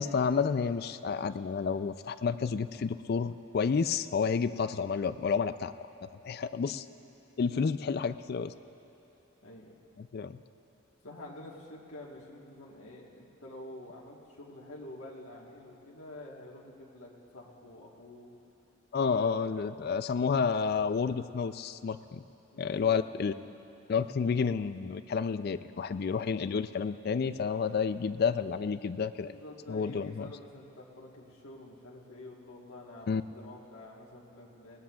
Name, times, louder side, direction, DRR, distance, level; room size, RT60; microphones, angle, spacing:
voice 1, 0.0-5.7 6.2-6.8 7.4-8.5 10.0-10.4 18.9-22.2 22.6-23.3 23.9-29.3 29.7-30.3 33.1-33.2, left 5 dB, 50° left, 12 dB, 0.3 m, -30 dB
voice 2, 9.4-9.7 11.0-18.3 19.0-19.8 22.5-23.0 29.2-34.8, left 1 dB, 85° left, -3 dB, 1.5 m, -48 dB
20.0 x 19.0 x 2.4 m, 3.0 s
head